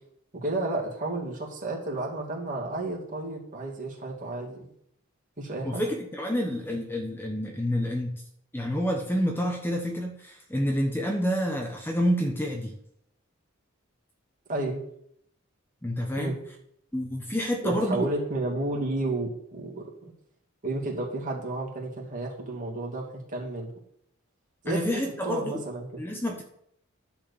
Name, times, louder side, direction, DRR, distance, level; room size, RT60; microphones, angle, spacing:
voice 1, 0.3-4.7 5.4-5.8 14.5-14.8 16.2-16.3 17.6-20.1 20.6-23.7 24.6-26.0, right 2 dB, 40° right, -2 dB, 2.6 m, -32 dB
voice 2, 5.6-8.2 8.5-12.8 15.8-16.4 16.9-18.1 24.7-25.6 26.0-26.4, equal, 10° left, 1 dB, 1.0 m, -28 dB
11.0 x 4.6 x 7.1 m, 0.71 s
head